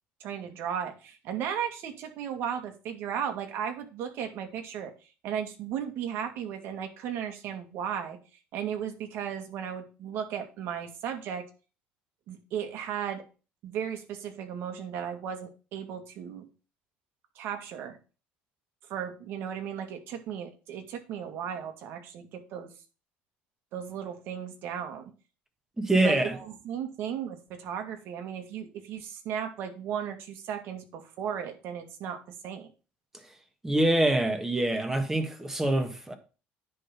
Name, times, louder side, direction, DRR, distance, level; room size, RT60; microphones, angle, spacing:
voice 1, 0.2-4.9 5.2-8.2 8.5-11.4 12.3-13.2 13.6-16.5 17.4-18.0 18.9-22.7 23.7-25.1 26.0-32.7, right 8 dB, 65° right, 2.1 m, -35 dB
voice 2, 25.8-26.4 33.6-36.2, right 1 dB, 10° right, 1.5 m, -25 dB
10.0 x 3.9 x 5.8 m
cardioid pair, 115°, 4 cm